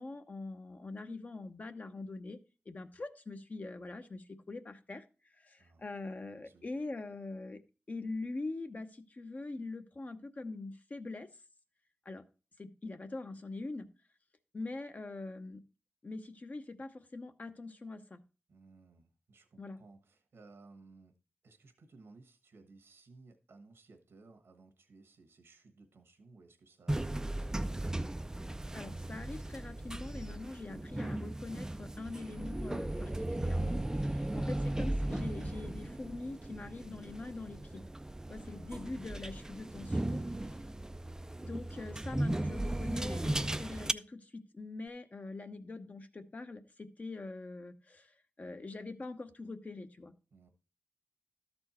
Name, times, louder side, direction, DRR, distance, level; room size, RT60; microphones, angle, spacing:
voice 1, 0.0-2.4 2.7-5.0 5.3-7.6 7.9-11.3 12.0-12.2 12.6-13.9 14.5-15.6 16.0-18.2 19.6-19.8 28.7-37.7 38.3-40.2 41.4-50.1, left 3 dB, 40° left, 0.8 m, -43 dB
voice 2, 18.5-21.1 21.4-28.1 38.4-39.2 39.5-39.7 40.4-40.6 50.3-50.5, right 3 dB, 90° right, 1.3 m, -59 dB
sound 1, 26.9-43.9, right 1 dB, 15° right, 0.3 m, -36 dB
12.5 x 4.4 x 4.2 m
wide cardioid pair, 85°, 4 cm